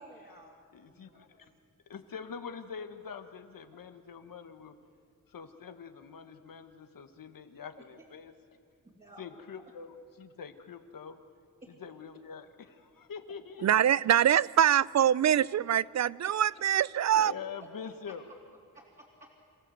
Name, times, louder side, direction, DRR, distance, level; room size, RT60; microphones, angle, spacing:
voice 1, 0.0-0.5 0.9-1.6 5.6-5.7 7.8-8.1 8.8-9.4 11.6-11.7 12.4-12.5 16.2-16.3 16.8-16.9 17.8-18.1 18.7-19.4, right 1 dB, 25° right, -4 dB, 3.1 m, -54 dB
voice 2, 0.7-1.5 1.9-4.8 5.3-8.3 9.2-11.2 11.7-13.9 17.1-18.3, left 6 dB, 85° left, 8 dB, 1.4 m, -45 dB
voice 3, 13.6-17.3, right 10 dB, 55° right, 22 dB, 0.4 m, -24 dB
26.5 x 15.5 x 8.0 m, 2.3 s
wide cardioid pair, 100°, 33 cm